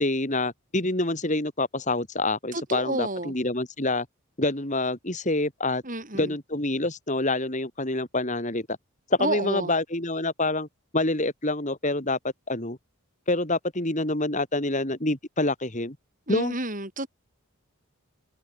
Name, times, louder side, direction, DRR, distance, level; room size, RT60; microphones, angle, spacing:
voice 1, 0.0-4.1 4.4-5.8 6.1-8.7 9.1-10.7 10.9-12.8 13.3-16.0 16.3-16.5, left 2 dB, 35° left, 3.3 m, -27 dB
voice 2, 2.5-3.3 5.8-6.3 9.2-9.7 16.3-17.1, right 2 dB, 35° right, 7.4 m, -30 dB
head